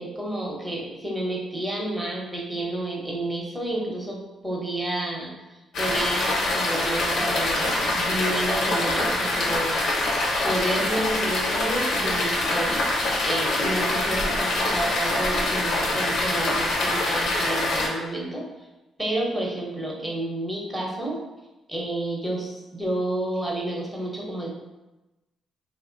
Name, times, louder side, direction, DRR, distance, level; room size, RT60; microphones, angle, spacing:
voice 1, 0.0-9.8 10.4-12.9 13.2-18.4 19.0-21.2 21.7-24.6, right 1 dB, 10° right, -3 dB, 0.9 m, -30 dB
sound 1, 5.7-17.9, left 2 dB, 70° left, 0.7 m, -24 dB
2.9 x 2.1 x 3.8 m, 1.0 s
cardioid pair, 90°, 0 cm